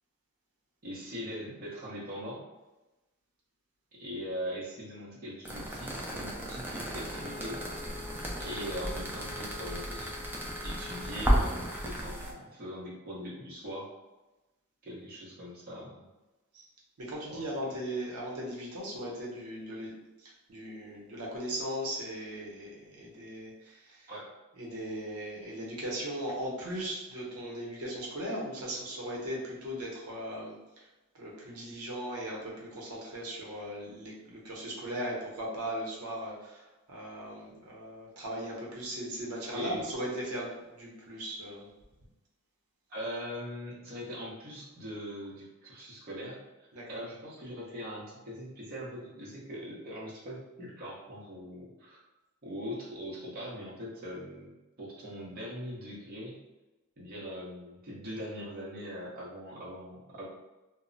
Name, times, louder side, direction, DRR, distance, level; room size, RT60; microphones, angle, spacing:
voice 1, 0.8-2.4 3.9-7.6 8.4-10.1 10.6-13.9 14.8-16.0 17.3-17.7 24.1-24.3 39.5-39.8 42.9-46.4 46.9-52.0 52.4-54.5 54.8-56.4 57.0-60.2, equal, 40° right, -6 dB, 0.7 m, -41 dB
sound 1, 5.4-12.3, equal, 10° right, 0.3 m, -33 dB
Wind instrument woodwind instrument, 7.0-11.8, left 4 dB, 80° left, 0.5 m, -47 dB
voice 2, 17.0-19.9 20.2-24.1 24.6-30.9 31.1-41.7 46.7-47.0, right 1 dB, 85° right, -4 dB, 0.7 m, -38 dB
2.1 x 2.0 x 3.7 m, 1.1 s
head